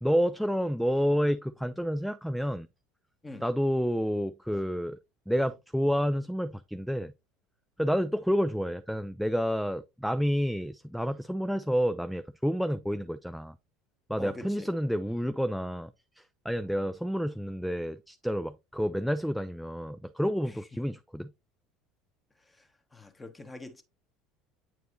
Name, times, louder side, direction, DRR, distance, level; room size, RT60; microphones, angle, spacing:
voice 1, 0.0-2.7 3.4-5.0 5.3-7.1 7.8-13.5 14.1-21.3, equal, ahead, 0.3 m, -29 dB
voice 2, 14.2-14.7 20.4-20.6 22.6-23.8, left 2 dB, 20° left, 1.3 m, -44 dB
8.2 x 4.6 x 2.7 m
hypercardioid pair, 70°, 0 cm